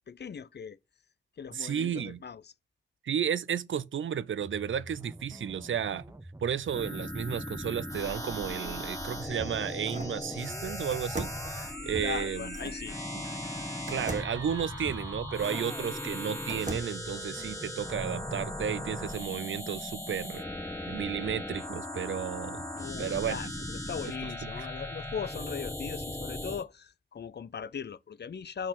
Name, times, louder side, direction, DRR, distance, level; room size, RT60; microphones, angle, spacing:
voice 1, 0.1-0.8 1.4-2.5 12.0-13.0 22.7-28.7, left 7 dB, 60° left, 0.4 m, -39 dB
voice 2, 1.5-2.2 3.0-6.0 6.4-11.3 11.6-12.5 13.1-13.2 13.9-20.4 20.9-22.7 23.0-23.4 24.2-24.7, right 8 dB, 80° right, 0.4 m, -33 dB
sound 1, 4.4-18.8, right 1 dB, 15° right, 0.7 m, -47 dB
sound 2, 6.7-26.6, left 1 dB, 15° left, 1.4 m, -38 dB
sound 3, 8.8-10.2 10.9-12.8 13.9-15.7 16.2-17.1, right 2 dB, 40° right, 1.3 m, -41 dB
5.7 x 4.3 x 6.1 m
wide cardioid pair, 60°, 20 cm